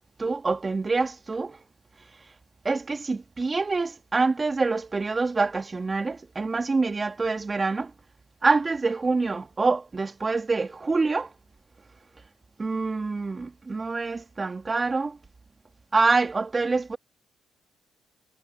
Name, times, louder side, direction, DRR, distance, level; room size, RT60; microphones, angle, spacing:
voice 1, 0.2-1.6 2.6-7.9 8.4-11.3 12.6-15.2 15.9-17.0, right 3 dB, 30° right, 2.4 m, -26 dB
supercardioid pair, 60°, 0 cm